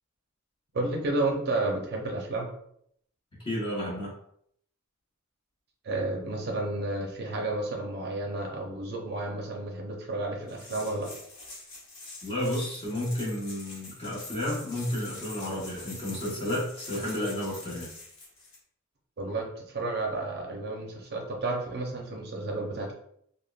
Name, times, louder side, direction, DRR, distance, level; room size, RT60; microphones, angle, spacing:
voice 1, 0.7-2.5 5.8-11.1 19.2-22.9, right 2 dB, 50° right, 1 dB, 0.5 m, -31 dB
voice 2, 3.4-4.1 12.2-17.9, left 1 dB, 25° left, -5 dB, 0.9 m, -32 dB
sound 1, 10.5-18.6, left 2 dB, 65° left, 0.9 m, -45 dB
3.4 x 2.1 x 2.3 m, 0.69 s
head